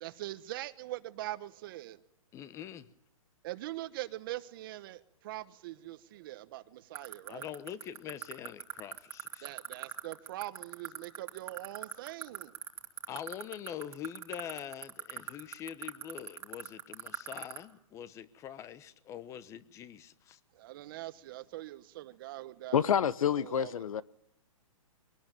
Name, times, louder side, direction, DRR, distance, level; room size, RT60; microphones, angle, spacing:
voice 1, 0.0-2.0 3.4-7.5 9.4-12.6 20.5-23.1 23.3-23.8, right 16 dB, 40° right, 1.2 m, -42 dB
voice 2, 2.3-2.9 7.3-9.5 13.1-20.4, left 9 dB, 15° left, 1.0 m, -44 dB
sound 1, 7.0-17.6, right 9 dB, 15° right, 2.1 m, -38 dB
voice 3, 22.7-24.0, left 8 dB, 70° left, 1.2 m, -28 dB
23.5 x 18.5 x 9.1 m
hypercardioid pair, 160°, 18 cm